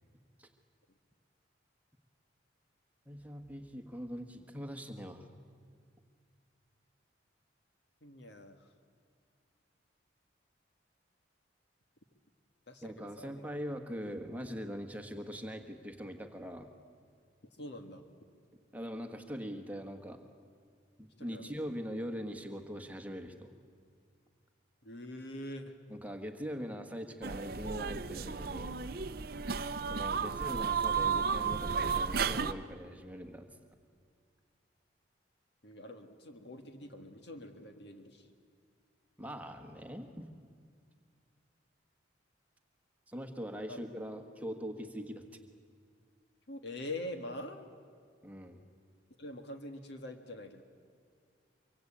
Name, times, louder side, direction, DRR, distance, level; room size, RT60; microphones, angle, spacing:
voice 1, 3.1-5.3 12.8-16.7 18.7-20.2 21.0-23.5 25.9-28.8 29.9-33.5 39.2-40.3 43.1-45.2 48.2-48.6, equal, 10° right, 5 dB, 1.5 m, -42 dB
voice 2, 8.0-8.7 12.7-13.4 17.6-18.1 21.2-21.6 24.8-25.7 30.2-30.4 35.6-38.3 43.7-43.8 46.5-47.7 49.2-50.6, left 1 dB, 60° left, 6 dB, 1.6 m, -44 dB
sound 1, 27.2-32.5, right 6 dB, 50° right, 0.6 m, -33 dB
24.5 x 23.5 x 8.7 m, 2.1 s
head